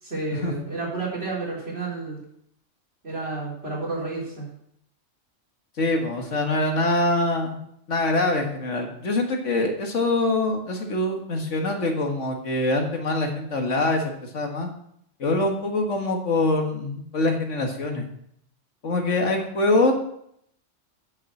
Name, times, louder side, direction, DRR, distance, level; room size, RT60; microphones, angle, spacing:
voice 1, 0.0-2.2 3.0-4.5, right 3 dB, 55° right, -4 dB, 3.8 m, -31 dB
voice 2, 5.8-7.5 7.9-14.7 15.2-18.1 18.8-19.9, left 2 dB, 75° left, 3 dB, 1.9 m, -24 dB
8.8 x 6.1 x 7.6 m, 0.71 s
omnidirectional pair, 1.3 m